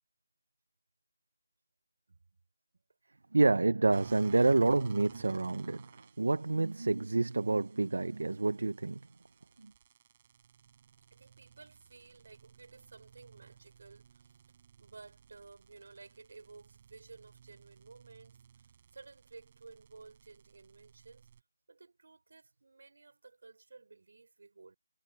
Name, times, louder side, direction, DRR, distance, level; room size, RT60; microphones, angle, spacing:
voice 1, 3.3-9.0 9.6-9.7, right 3 dB, 70° right, 1.0 m, -28 dB
sound 1, 3.9-21.4, right 8 dB, 25° right, 7.8 m, -56 dB
voice 2, 11.1-14.4 14.8-21.3 21.7-24.8, right 3 dB, 55° right, 5.5 m, -55 dB
figure-of-eight pair, 175°, 0 cm